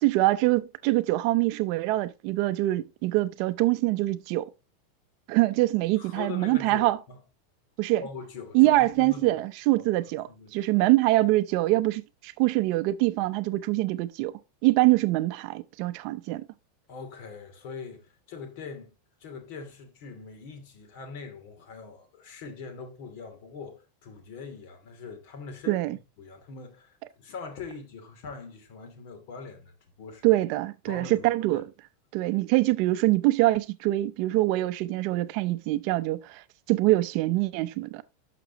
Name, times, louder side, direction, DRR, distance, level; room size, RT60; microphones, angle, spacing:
voice 1, 0.0-4.5 5.3-7.0 7.8-8.0 8.5-16.5 25.7-26.0 30.2-31.7 32.1-38.0, right 18 dB, 50° right, 0.6 m, -24 dB
voice 2, 6.0-7.2 8.0-9.4 10.3-10.6 16.9-18.9 19.2-25.8 26.2-30.4 30.9-31.6, left 5 dB, 55° left, 2.8 m, -42 dB
11.5 x 6.0 x 2.9 m
supercardioid pair, 150°, 0 cm